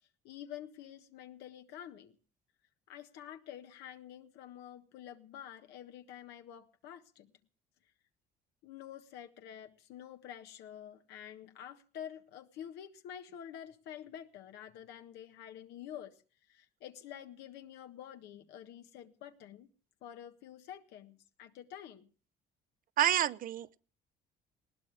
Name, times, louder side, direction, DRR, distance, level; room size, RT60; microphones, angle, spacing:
voice 1, 0.2-2.2 2.9-7.3 8.6-16.2 16.5-19.7 20.0-22.1, left 10 dB, 85° left, 6 dB, 1.5 m, -48 dB
voice 2, 23.0-23.8, right 12 dB, 55° right, 16 dB, 0.7 m, -29 dB
20.0 x 17.5 x 3.4 m, 0.39 s
cardioid pair, 110°, 17 cm